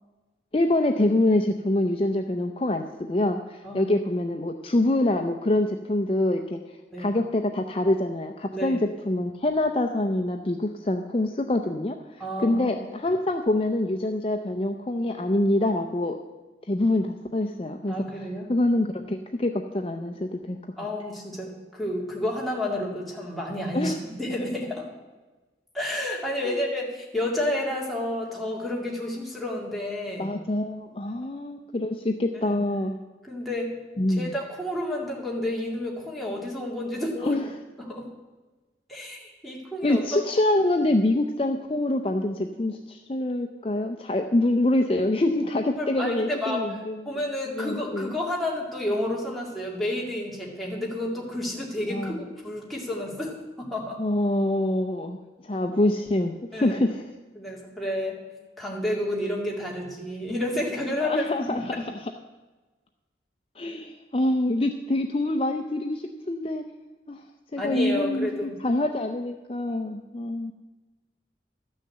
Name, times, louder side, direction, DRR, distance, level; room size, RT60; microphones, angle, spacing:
voice 1, 0.5-6.6 7.0-16.2 16.7-20.6 23.7-23.9 26.4-26.6 30.2-33.0 34.0-34.3 37.1-37.5 39.8-47.0 47.6-48.1 51.9-52.3 54.0-57.1 61.0-62.1 63.6-66.6 67.1-67.2 67.5-70.5, left 1 dB, 30° left, 5 dB, 0.5 m, -25 dB
voice 2, 3.6-4.0 6.9-7.1 8.5-8.8 12.2-12.7 17.9-18.5 20.8-24.9 25.7-30.3 31.1-31.2 32.5-32.6 33.2-33.7 34.1-37.3 37.9-38.1 38.9-40.2 45.8-46.6 47.0-54.0 56.5-56.8 57.4-58.2 58.6-61.3 67.6-68.5, left 1 dB, ahead, -4 dB, 2.2 m, -30 dB
12.5 x 6.5 x 7.8 m, 1.2 s
head